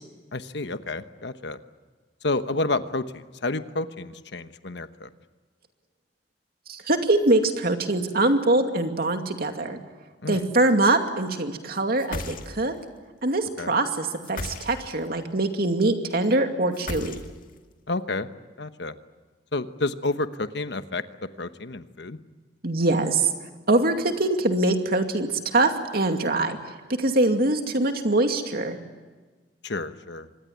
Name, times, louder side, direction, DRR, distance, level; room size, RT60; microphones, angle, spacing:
voice 1, 0.3-1.6 2.2-5.1 10.2-10.4 13.6-13.7 17.9-18.3 18.6-18.9 19.5-21.0 21.4-22.2 29.6-30.3, left 2 dB, 75° left, 10 dB, 1.2 m, -30 dB
voice 2, 6.7-9.8 10.3-12.7 13.2-17.2 22.6-23.3 23.7-26.6 27.0-28.8, right 2 dB, 60° right, 5 dB, 2.5 m, -23 dB
sound 1, 12.0-12.8 14.2-15.1 16.7-17.6, left 2 dB, 55° left, 1.9 m, -35 dB
25.5 x 20.0 x 9.4 m, 1.3 s
head